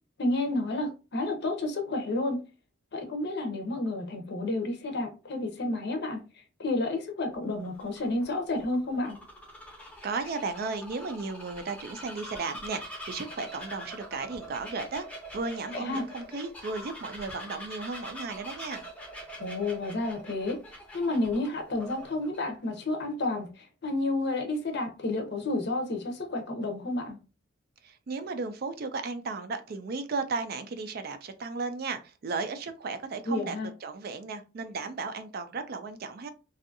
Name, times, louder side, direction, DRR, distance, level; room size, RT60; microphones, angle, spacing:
voice 1, 0.2-2.4 2.9-6.2 6.6-9.2 15.7-16.0 19.4-20.6 20.9-23.5 23.8-27.2 33.3-33.7, left 2 dB, 55° left, 0.6 m, -30 dB
Bird vocalization bird call bird song, 7.3-22.4, equal, 5° left, 0.6 m, -44 dB
voice 2, 10.0-18.8 27.8-36.3, right 4 dB, 50° right, 0.4 m, -35 dB
2.6 x 2.4 x 2.6 m
head